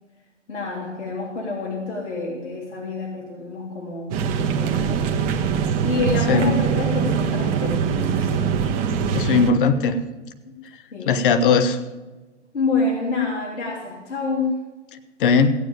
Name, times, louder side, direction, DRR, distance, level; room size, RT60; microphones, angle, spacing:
voice 1, 0.5-5.1 5.8-8.5 10.5-10.6 10.9-11.2 12.5-14.6, left 3 dB, 70° left, -5 dB, 3.5 m, -27 dB
sound 1, 4.1-9.5, right 7 dB, 25° right, 1.3 m, -23 dB
voice 2, 9.1-10.0 11.1-11.8 15.2-15.5, left 5 dB, 45° left, 10 dB, 1.3 m, -18 dB
17.0 x 9.0 x 5.2 m, 1.2 s
figure-of-eight pair, 120°, 36 cm